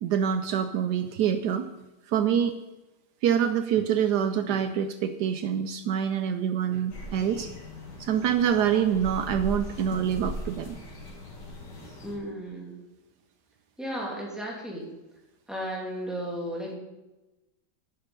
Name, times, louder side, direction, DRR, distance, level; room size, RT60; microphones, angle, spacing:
voice 1, 0.0-1.7 2.1-2.5 3.2-7.5 8.0-10.8, right 8 dB, 75° right, 9 dB, 1.2 m, -26 dB
sound 1, 6.9-12.1, left 1 dB, 75° left, 2.8 m, -39 dB
voice 2, 12.0-12.8 13.8-14.9 15.5-16.8, equal, ahead, -3 dB, 2.8 m, -34 dB
10.5 x 9.7 x 5.3 m, 1.0 s
omnidirectional pair, 1.9 m